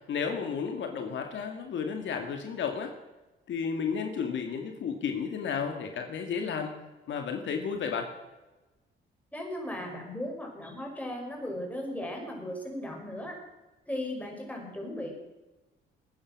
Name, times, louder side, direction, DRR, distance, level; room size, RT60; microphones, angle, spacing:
voice 1, 0.1-2.9 3.5-6.8 7.1-8.1, left 6 dB, 70° left, 4 dB, 2.1 m, -32 dB
voice 2, 9.3-13.4 13.9-15.1, left 1 dB, 5° left, 0 dB, 5.9 m, -37 dB
21.0 x 9.6 x 6.1 m, 1.1 s
cardioid pair, 90°, 20 cm